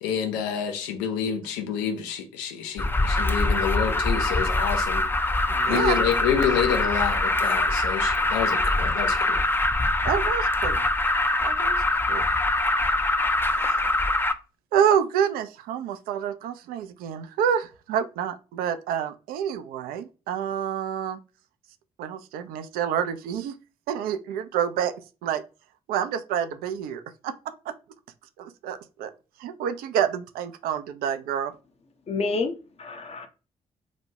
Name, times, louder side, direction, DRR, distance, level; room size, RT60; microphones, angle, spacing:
voice 1, 0.0-5.0 5.6-9.4, left 8 dB, 80° left, 0.6 m, -28 dB
Alarm, 2.8-14.3, left 2 dB, 15° left, 0.4 m, -23 dB
voice 2, 5.5-6.0 10.0-10.9 11.4-12.3 12.9-13.8 14.7-21.2 22.0-23.6 23.9-24.9 25.2-25.4 25.9-27.7 28.4-29.1 29.4-31.5, right 8 dB, 65° right, 0.4 m, -28 dB
voice 3, 32.1-33.3, left 3 dB, 40° left, 0.7 m, -29 dB
3.0 x 2.1 x 2.8 m
hypercardioid pair, 40°, 16 cm